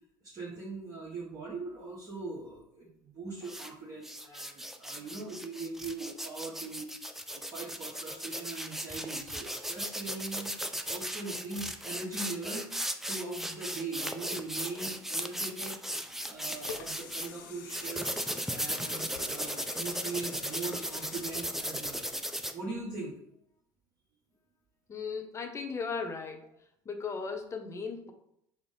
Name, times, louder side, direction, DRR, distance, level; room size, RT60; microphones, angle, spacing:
voice 1, 0.2-6.9 7.1-10.5 10.8-15.8 16.3-18.1 18.5-22.1 22.5-23.1, right 3 dB, 35° right, -6 dB, 1.2 m, -41 dB
sound 1, 3.4-3.7 4.0-17.3 17.7-22.5, equal, 5° right, 0.4 m, -36 dB
sound 2, 16.1-22.4 22.9-23.0, left 8 dB, 75° left, 0.5 m, -48 dB
voice 2, 24.9-26.5 26.8-28.1, left 5 dB, 25° left, 5 dB, 0.7 m, -37 dB
4.8 x 2.1 x 3.7 m, 0.75 s
hypercardioid pair, 70°, 11 cm